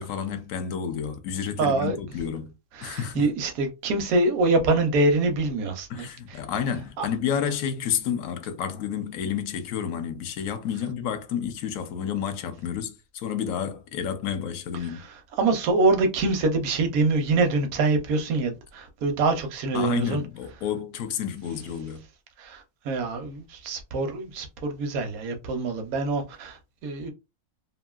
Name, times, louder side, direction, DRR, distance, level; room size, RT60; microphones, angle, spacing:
voice 1, 0.0-2.5 2.8-3.3 5.9-15.0 19.7-22.0, left 8 dB, 70° left, 0.9 m, -30 dB
voice 2, 1.6-2.0 2.7-6.4 7.0-7.1 15.4-20.2 22.4-27.1, right 3 dB, 80° right, 1.2 m, -25 dB
2.9 x 2.6 x 2.3 m
omnidirectional pair, 1.5 m